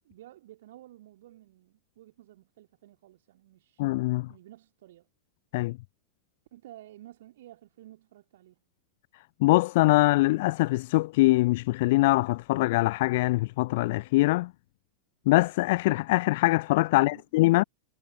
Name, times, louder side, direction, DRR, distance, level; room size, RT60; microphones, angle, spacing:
voice 1, 0.0-3.8 4.3-5.1 6.5-8.6 16.9-17.2, right 14 dB, 55° right, 2.4 m, -52 dB
voice 2, 3.8-4.3 5.5-5.8 9.4-14.5 15.3-17.6, left 20 dB, 50° left, 0.4 m, -23 dB
figure-of-eight pair, 90°, 0 cm